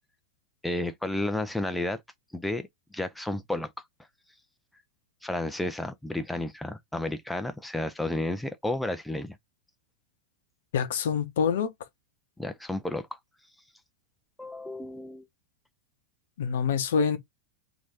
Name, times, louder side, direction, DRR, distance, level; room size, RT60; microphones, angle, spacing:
voice 1, 0.6-2.0 2.3-2.7 2.9-3.7 5.2-9.4 12.4-13.2 14.4-15.2, left 1 dB, 5° left, 0.4 m, -32 dB
voice 2, 10.7-11.7 16.4-17.2, left 6 dB, 60° left, 0.7 m, -26 dB
3.1 x 2.7 x 3.9 m
figure-of-eight pair, 90°, 0 cm